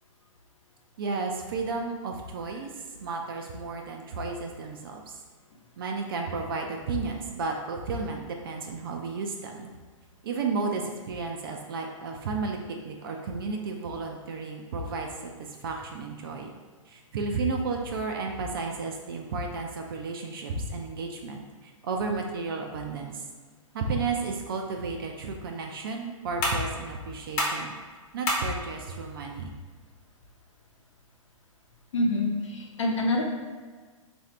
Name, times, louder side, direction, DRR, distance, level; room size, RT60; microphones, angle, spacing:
voice 1, 1.0-2.7 3.0-5.0 5.8-9.7 10.2-12.6 12.8-15.1 15.6-16.5 16.9-23.2 23.7-27.7 28.1-29.5, right 4 dB, 40° right, 2 dB, 0.4 m, -32 dB
sound 1, 25.5-31.9, left 1 dB, 30° left, 0.9 m, -35 dB
voice 2, 31.9-33.2, left 2 dB, 60° left, 0 dB, 0.8 m, -26 dB
3.1 x 2.6 x 4.4 m, 1.5 s
figure-of-eight pair, 115°, 18 cm